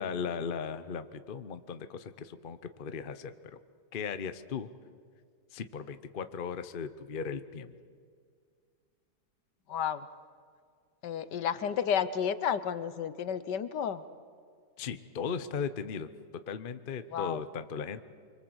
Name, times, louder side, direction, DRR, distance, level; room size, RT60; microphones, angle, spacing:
voice 1, 0.0-3.3 3.9-4.7 5.5-7.7 14.8-16.1 16.5-18.0, left 6 dB, 40° left, 11 dB, 0.8 m, -37 dB
voice 2, 9.7-10.1 11.0-14.0 17.1-17.4, left 8 dB, 70° left, 13 dB, 1.5 m, -31 dB
25.5 x 24.5 x 8.0 m, 2.1 s
omnidirectional pair, 2.0 m